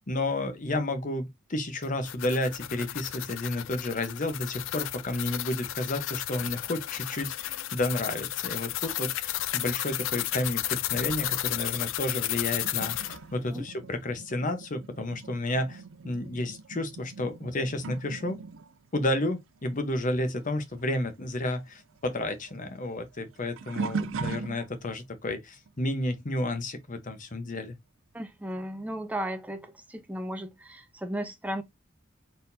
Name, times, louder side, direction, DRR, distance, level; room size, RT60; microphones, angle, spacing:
voice 1, 0.1-18.4 18.9-27.8, left 1 dB, 40° left, 0.9 m, -31 dB
sound 1, 1.8-13.2, left 14 dB, 70° left, 0.3 m, -33 dB
sound 2, 12.5-20.5 20.7-25.0 25.7-26.0 28.2-28.3 29.2-29.3, right 4 dB, 65° right, 0.4 m, -40 dB
voice 2, 28.1-31.6, right 1 dB, 5° right, 0.6 m, -35 dB
4.3 x 3.7 x 2.7 m
head